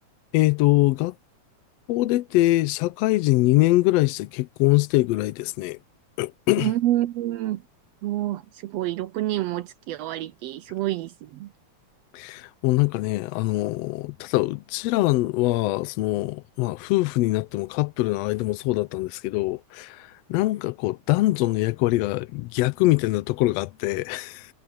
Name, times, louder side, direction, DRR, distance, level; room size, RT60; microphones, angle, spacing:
voice 1, 0.3-1.1 1.9-5.8 6.2-6.7 12.1-24.5, left 18 dB, 80° left, 1.5 m, -23 dB
voice 2, 6.6-7.6 8.0-11.5, right 14 dB, 80° right, 1.5 m, -28 dB
omnidirectional pair, 3.5 m